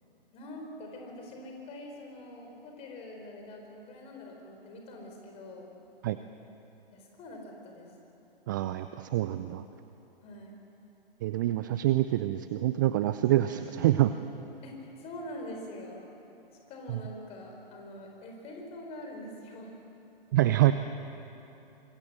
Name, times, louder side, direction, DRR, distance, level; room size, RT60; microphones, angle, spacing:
voice 1, 0.3-5.7 6.9-7.9 10.2-10.6 14.6-16.0 16.7-19.7, left 1 dB, 20° left, 2 dB, 4.8 m, -44 dB
voice 2, 8.5-9.6 11.2-14.1 16.9-17.0 20.3-20.7, right 14 dB, 20° right, 11 dB, 0.5 m, -26 dB
25.0 x 23.0 x 7.6 m, 3.0 s
figure-of-eight pair, 130°, 29 cm